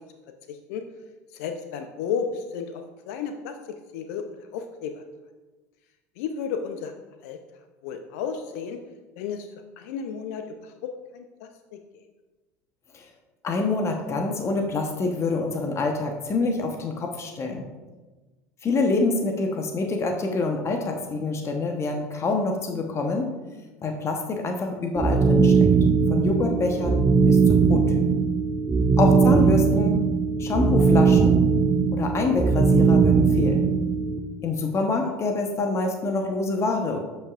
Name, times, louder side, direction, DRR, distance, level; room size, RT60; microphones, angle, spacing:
voice 1, 0.5-0.8 1.3-3.5 3.9-4.2 4.5-5.0 6.2-6.9 7.2-7.4 7.8-8.8 9.2-9.5 9.8-11.8 35.0-35.1, left 6 dB, 65° left, 6 dB, 0.6 m, -33 dB
voice 2, 13.4-17.7 18.6-23.3 23.8-25.7 26.1-28.3 29.0-30.0 30.4-31.4 31.9-33.7 34.4-37.0, left 3 dB, 30° left, 3 dB, 1.1 m, -26 dB
sound 1, 25.0-34.2, right 5 dB, 20° right, 0.7 m, -19 dB
12.5 x 5.6 x 2.5 m, 1.2 s
hypercardioid pair, 75°, 9 cm